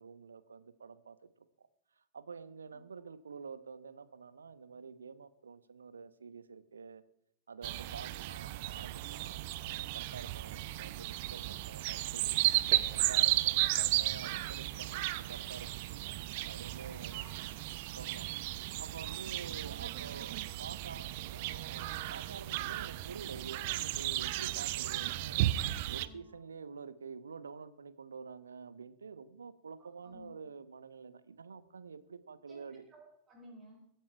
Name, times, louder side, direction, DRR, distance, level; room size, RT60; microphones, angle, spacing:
voice 1, 0.0-1.7 2.1-7.0 7.5-12.8 13.1-15.8 16.4-17.2 17.8-18.3 18.8-25.5 25.9-32.9, right 5 dB, 75° right, 15 dB, 0.9 m, -48 dB
sound 1, 7.6-26.1, right 17 dB, 50° right, 0.7 m, -34 dB
voice 2, 17.1-17.4 17.7-18.1 25.9-26.2 30.0-30.3 32.5-33.9, equal, 25° right, 1 dB, 4.7 m, -56 dB
23.0 x 9.2 x 4.6 m, 0.73 s
figure-of-eight pair, 90°, 0 cm